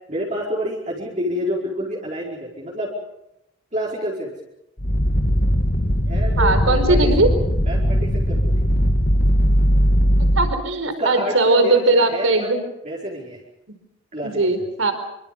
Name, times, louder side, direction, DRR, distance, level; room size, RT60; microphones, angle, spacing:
voice 1, 0.1-2.9 3.7-4.3 5.5-5.7 6.0-7.1 7.6-8.7 11.0-12.5 12.8-13.4 14.1-14.7, equal, 35° right, -4 dB, 5.1 m, -28 dB
sound 1, 4.8-10.6, equal, 45° left, 2.0 m, -19 dB
voice 2, 6.4-7.3 10.3-12.6 14.2-14.9, right 2 dB, 85° right, 9 dB, 4.6 m, -19 dB
28.5 x 25.0 x 5.4 m, 0.84 s
head